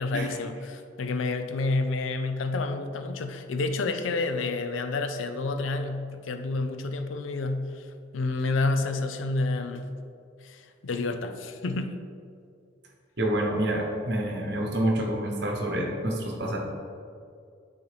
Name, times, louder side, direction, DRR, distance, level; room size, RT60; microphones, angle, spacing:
voice 1, 0.0-7.9 8.1-10.0 10.4-11.9, left 3 dB, 80° left, 8 dB, 0.5 m, -29 dB
voice 2, 13.2-16.6, right 1 dB, 55° right, 0 dB, 1.1 m, -27 dB
9.4 x 4.0 x 3.4 m, 2.4 s
head